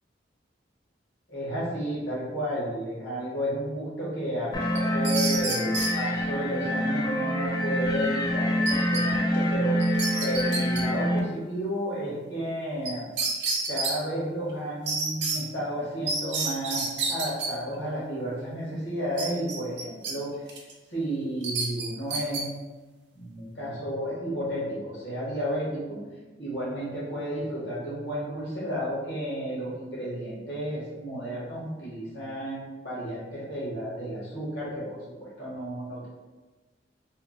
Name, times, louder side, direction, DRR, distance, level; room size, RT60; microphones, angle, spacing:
voice 1, 1.3-9.8 10.2-13.1 13.7-20.6 20.9-22.5 23.1-26.0 26.4-36.1, equal, 65° left, -8 dB, 1.1 m, -32 dB
sound 1, 4.5-11.2, equal, 20° left, 0.3 m, -26 dB
sound 2, 4.8-5.9 8.7-9.0 9.3-9.4 9.8-10.8 12.9-13.0 13.2-13.9 14.9-15.4 16.1-17.5 19.2-20.1 20.5-20.7 21.4-22.4, right 3 dB, 65° right, 0.6 m, -29 dB
2.8 x 2.1 x 3.6 m, 1.2 s
head